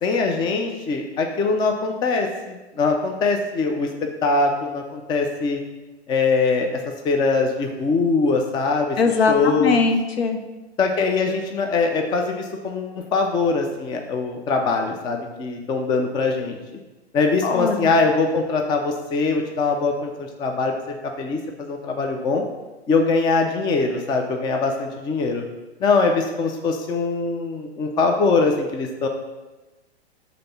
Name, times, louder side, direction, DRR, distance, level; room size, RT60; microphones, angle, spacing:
voice 1, 0.0-5.6 6.1-6.7 7.0-9.0 9.3-9.9 10.8-16.6 17.1-20.7 21.2-22.4 22.9-25.4 25.8-29.1, left 4 dB, 15° left, 3 dB, 0.4 m, -22 dB
voice 2, 9.0-10.4 17.4-17.8, left 4 dB, 65° left, 5 dB, 0.9 m, -20 dB
5.1 x 3.8 x 5.6 m, 1.1 s
hypercardioid pair, 115°, 32 cm